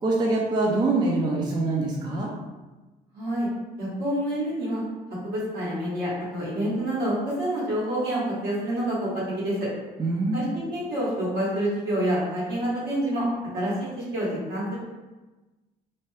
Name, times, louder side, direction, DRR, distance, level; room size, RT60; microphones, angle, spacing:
voice 1, 0.0-2.3 10.0-10.5, right 2 dB, 25° right, -3 dB, 0.4 m, -24 dB
voice 2, 3.1-3.5 3.8-4.8 5.2-9.7 10.3-13.3 13.5-14.8, right 1 dB, 70° right, -7 dB, 1.3 m, -27 dB
2.7 x 2.2 x 3.1 m, 1.2 s
cardioid pair, 110°, 17 cm